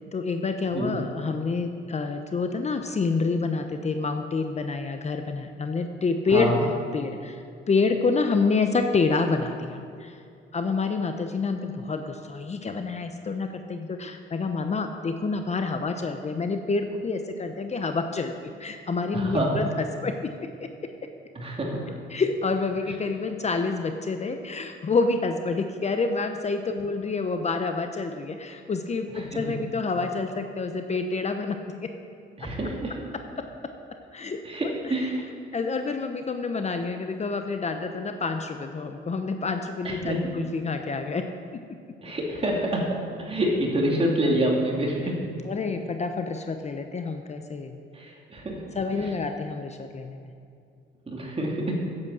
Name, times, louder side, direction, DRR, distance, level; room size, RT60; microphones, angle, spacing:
voice 1, 0.1-10.2 10.5-18.3 18.6-19.7 20.0-20.3 20.6-20.9 22.1-31.9 33.4-33.5 34.1-34.4 35.5-41.3 41.5-41.6 45.4-47.8 48.7-50.3, left 4 dB, 35° left, 6 dB, 0.8 m, -28 dB
voice 2, 6.3-6.6 19.1-19.6 21.3-21.9 22.9-23.0 29.1-29.5 32.4-33.0 34.4-35.2 39.8-40.3 42.0-45.3 47.9-49.1 51.1-51.7, right 1 dB, 30° right, -2 dB, 2.7 m, -27 dB
9.7 x 8.0 x 7.3 m, 2.5 s
cardioid pair, 90°, 20 cm